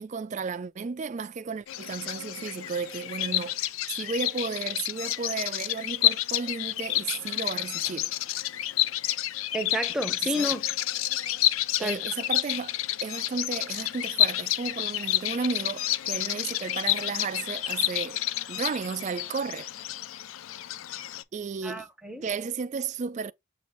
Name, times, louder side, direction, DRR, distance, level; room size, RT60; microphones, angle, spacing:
voice 1, 0.0-3.6 4.0-8.1 10.2-10.5 11.8-12.8 13.0-18.2 18.5-19.7 21.3-21.9 22.2-23.3, right 5 dB, 35° right, 0.3 m, -33 dB
Bird vocalization bird call bird song, 1.7-21.2, left 14 dB, 90° left, 0.4 m, -29 dB
voice 2, 9.5-10.7 11.8-12.1 21.6-22.3, equal, 5° right, 0.8 m, -31 dB
6.6 x 2.6 x 3.0 m
head